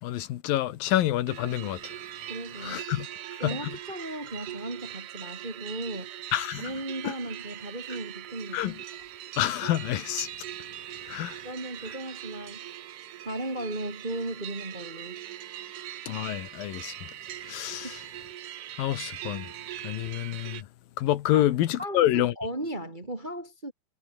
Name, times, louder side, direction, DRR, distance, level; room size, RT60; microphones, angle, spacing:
voice 1, 0.0-2.0 2.6-3.1 3.4-3.7 6.3-6.7 7.0-7.1 8.5-8.8 9.4-10.3 11.1-11.4 16.1-16.9 17.4-18.0 18.8-19.5 19.8-20.7 21.0-22.3, left 13 dB, 80° left, 2.9 m, -28 dB
sound 1, 1.3-20.6, right 12 dB, 70° right, 2.8 m, -41 dB
voice 2, 2.3-2.8 3.4-6.1 6.6-8.7 11.4-12.7 13.2-15.2 17.8-17.9 21.3-21.5 21.8-23.7, right 1 dB, 15° right, 1.7 m, -36 dB
omnidirectional pair, 4.0 m